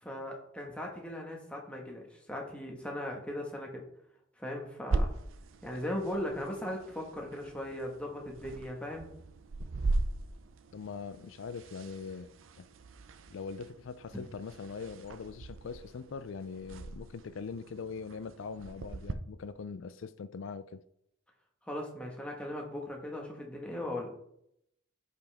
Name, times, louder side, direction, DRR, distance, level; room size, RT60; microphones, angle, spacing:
voice 1, 0.0-2.0 2.3-3.8 4.4-5.1 5.6-9.1 14.1-14.2 21.7-24.1, left 1 dB, 5° left, 1.4 m, -38 dB
sound 1, 4.9-19.1, right 2 dB, 80° right, 0.6 m, -39 dB
voice 2, 10.7-12.3 12.6-12.7 13.3-20.8, left 5 dB, 75° left, 0.4 m, -42 dB
10.0 x 5.6 x 3.5 m
head